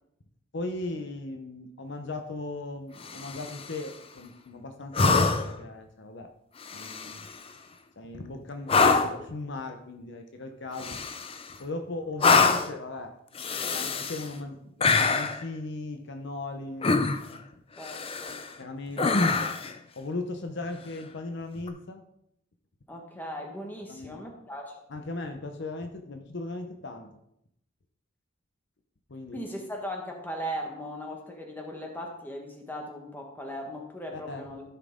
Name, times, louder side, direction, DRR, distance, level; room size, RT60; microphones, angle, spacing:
voice 1, 0.5-6.3 6.7-7.3 8.0-11.0 11.6-13.1 13.7-16.9 18.6-19.5 19.9-22.0 23.9-24.2 24.9-27.2 29.1-29.4 34.1-34.5, left 2 dB, 60° left, 6 dB, 0.8 m, -37 dB
sound 1, 3.0-3.7 4.9-5.6 6.6-7.4 8.7-9.2 10.8-11.5 12.2-12.8 13.4-14.3 14.8-15.4 16.8-17.4 17.8-18.5 19.0-19.7 21.6-21.7, left 4 dB, 30° left, 0.5 m, -25 dB
voice 2, 17.8-18.4 19.0-19.1 22.9-24.7 29.3-34.6, equal, 10° left, 1 dB, 1.5 m, -38 dB
13.5 x 5.8 x 3.7 m, 0.77 s
head